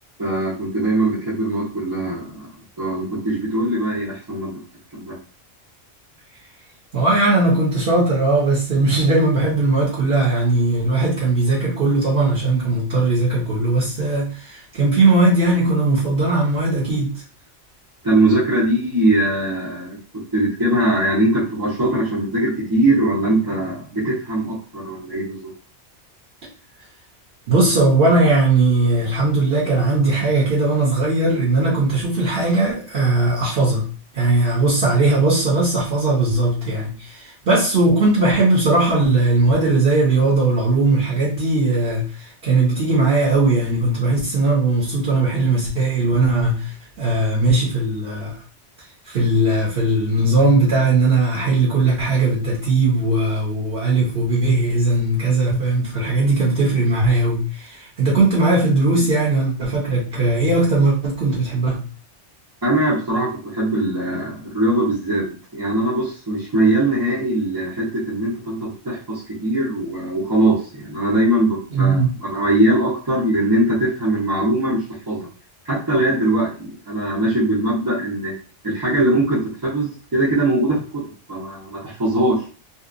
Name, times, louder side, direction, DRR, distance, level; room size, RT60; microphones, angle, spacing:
voice 1, 0.2-2.5 2.8-4.6 4.9-5.2 18.0-25.5 62.6-75.3 75.6-78.3 78.6-81.0 81.3-82.4, right 1 dB, 30° right, 0.5 m, -21 dB
voice 2, 6.9-17.2 27.5-33.9 34.1-48.4 49.0-61.8 71.7-72.1, right 2 dB, 55° right, 0.8 m, -18 dB
2.7 x 2.1 x 2.4 m
omnidirectional pair, 1.2 m